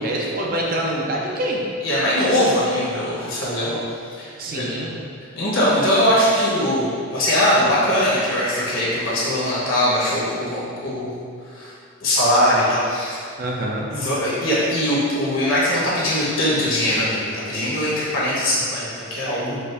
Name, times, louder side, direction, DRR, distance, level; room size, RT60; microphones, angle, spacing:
voice 1, 0.0-1.6 4.4-5.0 13.4-13.9, right 1 dB, 40° right, -2 dB, 0.4 m, -25 dB
voice 2, 1.8-3.8 4.2-4.6 5.4-11.2 11.5-11.7 12.0-13.2 13.9-19.6, equal, 70° left, -7 dB, 1.2 m, -21 dB
4.5 x 2.5 x 3.4 m, 2.2 s
head